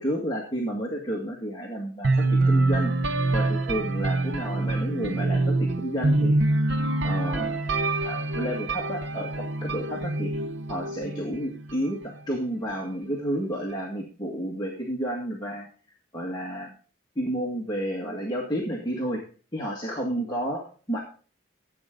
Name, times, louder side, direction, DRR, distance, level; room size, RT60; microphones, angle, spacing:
voice 1, 0.0-2.9 3.3-6.3 6.7-6.8 7.0-7.6 8.0-10.3 10.7-15.7 16.1-16.7 17.2-19.2 19.5-21.0, equal, 20° left, -3 dB, 1.9 m, -31 dB
sound 1, 2.0-11.9, right 2 dB, 60° right, 0.8 m, -25 dB
15.0 x 8.3 x 3.8 m, 0.39 s
head